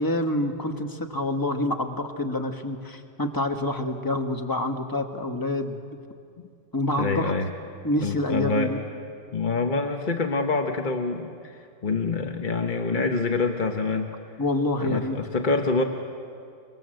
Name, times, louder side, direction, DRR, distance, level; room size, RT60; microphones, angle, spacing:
voice 1, 0.0-5.8 6.7-7.3 7.8-8.8 14.4-15.2, left 1 dB, 15° left, 4 dB, 1.6 m, -27 dB
voice 2, 6.9-7.5 8.0-8.7 9.3-14.1 14.8-15.8, left 3 dB, 40° left, 4 dB, 1.4 m, -26 dB
26.5 x 24.5 x 7.8 m, 2.3 s
omnidirectional pair, 1.4 m